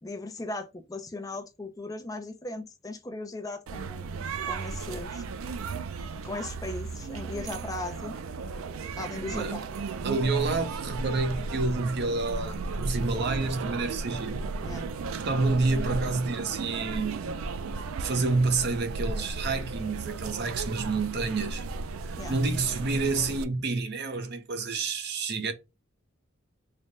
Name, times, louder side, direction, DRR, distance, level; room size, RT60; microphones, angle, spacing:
voice 1, 0.0-5.3 6.2-8.2 9.0-9.7 14.6-14.9 22.2-22.4, left 2 dB, 15° left, 0.5 m, -38 dB
sound 1, 3.7-23.4, right 4 dB, 90° right, 0.4 m, -35 dB
voice 2, 10.0-14.4 15.3-17.2 18.0-21.7 22.0-25.5, right 3 dB, 55° right, 0.6 m, -29 dB
3.3 x 2.1 x 3.8 m
head